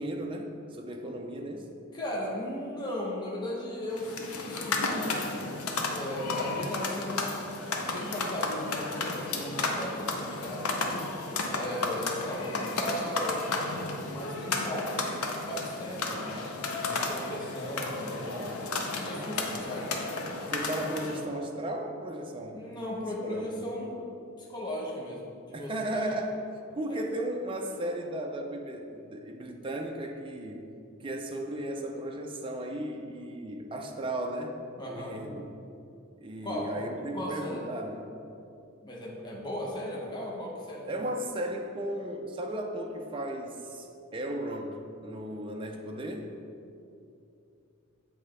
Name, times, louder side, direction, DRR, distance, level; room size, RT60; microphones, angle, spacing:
voice 1, 0.0-1.7 20.5-22.7 23.2-23.5 25.5-26.4 26.8-30.6 31.0-35.6 36.2-38.1 40.9-46.3, right 1 dB, 25° right, 2 dB, 0.5 m, -35 dB
voice 2, 1.9-5.5 5.9-11.0 11.5-13.4 14.0-15.2 15.5-16.5 16.8-18.5 18.9-19.9 22.5-24.0 24.4-26.1 26.9-27.0 34.8-35.2 36.4-36.7 37.0-37.7 38.8-41.0, left 1 dB, 20° left, -4 dB, 0.8 m, -37 dB
sound 1, 3.9-21.2, left 3 dB, 85° left, 0.7 m, -33 dB
7.7 x 3.2 x 4.9 m, 2.7 s
head